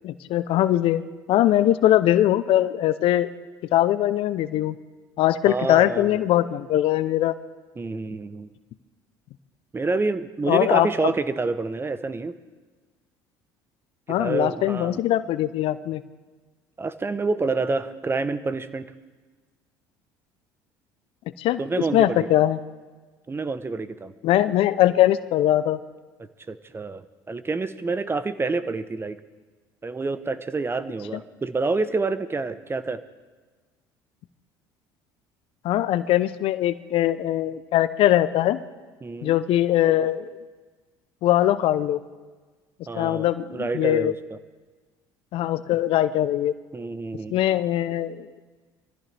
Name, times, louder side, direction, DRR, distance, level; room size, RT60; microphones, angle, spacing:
voice 1, 0.0-1.0 1.3-3.3 3.7-4.8 5.2-7.3 10.5-11.1 14.1-16.0 21.4-22.6 24.2-25.8 35.6-38.6 39.2-40.3 41.2-42.0 43.0-44.1 45.3-46.5 47.3-48.4, left 13 dB, 60° left, 14 dB, 0.7 m, -21 dB
voice 2, 5.5-6.2 7.8-8.5 9.7-12.3 14.1-15.0 16.8-18.9 21.6-22.3 23.3-24.1 26.5-29.2 29.8-33.0 39.0-39.4 42.9-44.4 46.7-47.4, right 3 dB, 20° right, 12 dB, 0.9 m, -28 dB
23.5 x 14.5 x 3.4 m, 1.4 s
hypercardioid pair, 70°, 11 cm